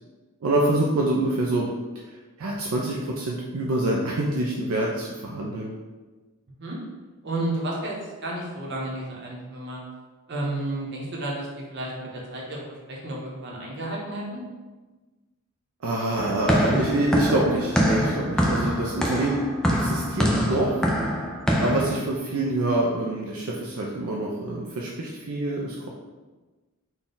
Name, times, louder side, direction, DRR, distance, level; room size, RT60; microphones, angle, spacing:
voice 1, 0.4-1.7 2.1-5.7 15.8-19.4 19.7-20.8 21.6-25.9, right 1 dB, 75° right, -3 dB, 0.5 m, -26 dB
voice 2, 7.2-9.8 10.3-14.4 21.8-21.9, right 1 dB, 50° right, -3 dB, 0.9 m, -32 dB
sound 1, 16.2-22.0, equal, 5° left, 0.3 m, -24 dB
4.0 x 2.3 x 3.8 m, 1.2 s
head